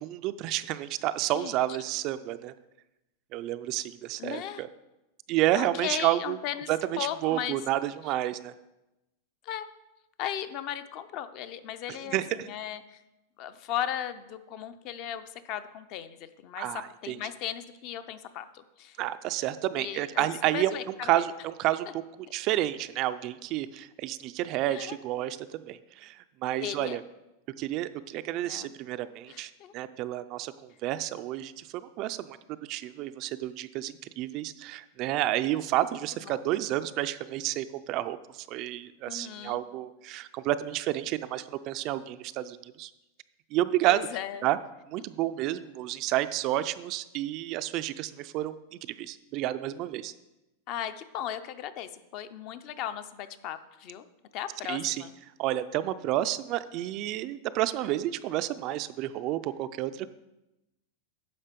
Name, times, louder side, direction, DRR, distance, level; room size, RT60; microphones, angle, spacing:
voice 1, 0.0-2.5 3.3-4.7 5.3-6.4 6.7-8.5 11.9-12.5 16.6-17.2 19.0-22.0 22.3-27.0 27.6-42.9 43.5-44.0 44.4-44.6 44.9-50.1 54.7-55.1 55.4-60.1, right 14 dB, 35° right, 12 dB, 0.3 m, -30 dB
voice 2, 4.2-4.6 5.6-6.7 7.0-7.6 9.4-9.7 10.2-13.0 13.4-19.0 19.8-20.3 20.5-21.1 24.7-25.0 26.6-27.0 28.5-28.7 29.3-29.7 36.3-36.4 39.0-39.6 43.9-44.5 50.7-54.0 54.3-55.1, left 10 dB, 35° left, 12 dB, 0.5 m, -36 dB
10.0 x 6.6 x 5.1 m, 0.95 s
supercardioid pair, 170°, 0 cm